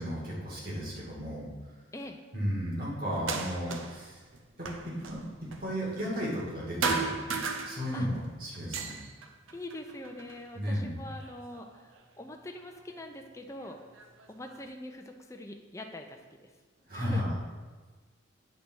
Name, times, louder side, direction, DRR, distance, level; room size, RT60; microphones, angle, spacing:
voice 1, 0.0-1.5 2.3-4.2 4.6-7.1 7.6-8.9 10.5-11.0 16.9-17.3, equal, 45° right, -4 dB, 2.4 m, -34 dB
sound 1, 3.1-4.1 4.3-6.5 6.8-8.2 8.5-10.4 11.1-12.0 12.9-13.0 13.6-14.7, right 4 dB, 80° right, 0.8 m, -36 dB
voice 2, 9.5-13.8 14.3-16.5 16.9-17.2, left 1 dB, 15° left, 3 dB, 0.7 m, -44 dB
9.1 x 4.2 x 6.2 m, 1.4 s
head